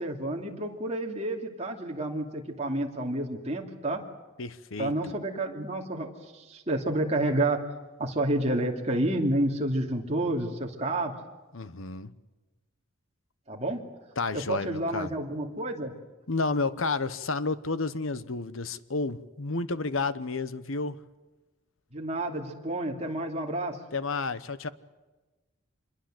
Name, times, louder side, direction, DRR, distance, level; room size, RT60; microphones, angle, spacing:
voice 1, 0.0-4.0 4.8-7.6 8.0-11.1 13.5-13.8 14.3-15.9 21.9-23.8, right 1 dB, 30° right, 2.8 m, -29 dB
voice 2, 4.4-5.1 11.5-12.1 14.2-15.1 16.3-21.0 23.9-24.7, left 3 dB, 65° left, 1.0 m, -31 dB
26.5 x 22.0 x 7.8 m
head